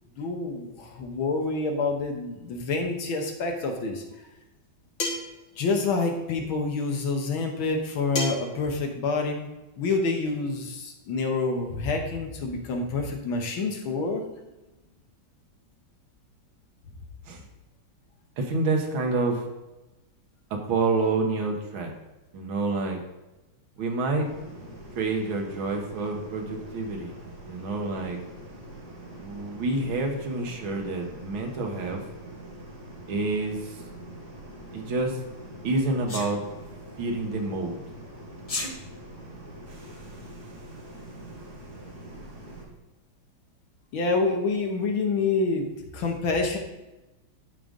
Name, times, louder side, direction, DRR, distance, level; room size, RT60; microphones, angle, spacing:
voice 1, 0.2-4.0 5.6-9.5 9.8-14.2 43.9-45.7 45.9-46.6, left 3 dB, 85° left, 3 dB, 2.0 m, -27 dB
sound 1, 5.0-5.4 8.2-8.6, left 2 dB, 60° left, 2.0 m, -29 dB
voice 2, 18.4-19.4 20.5-21.9 22.3-23.0 23.8-24.3 25.0-27.2 27.5-28.2 29.2-32.1 33.1-33.8 34.7-35.2 35.6-36.4 37.0-37.8, right 3 dB, 80° right, 1 dB, 2.0 m, -28 dB
sound 2, 24.2-42.6, right 1 dB, 55° right, 2.4 m, -44 dB
Sneeze, 36.1-36.3 38.4-38.7, left 2 dB, 30° left, 0.6 m, -31 dB
11.0 x 3.7 x 5.2 m, 1.0 s
omnidirectional pair, 2.2 m